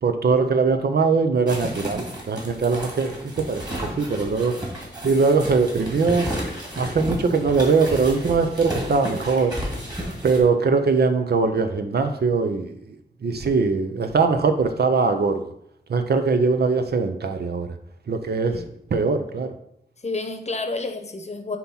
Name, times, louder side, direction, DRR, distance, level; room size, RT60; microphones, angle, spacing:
voice 1, 0.0-4.5 5.0-6.3 6.8-9.5 10.2-15.5 15.9-17.7 18.1-18.6 18.9-19.5, right 4 dB, 75° right, 7 dB, 0.7 m, -21 dB
sound 1, 1.5-10.4, equal, 25° right, 2.2 m, -32 dB
voice 2, 20.0-21.6, left 3 dB, 40° left, 5 dB, 0.8 m, -30 dB
7.4 x 3.0 x 5.6 m, 0.72 s
wide cardioid pair, 100°, 17 cm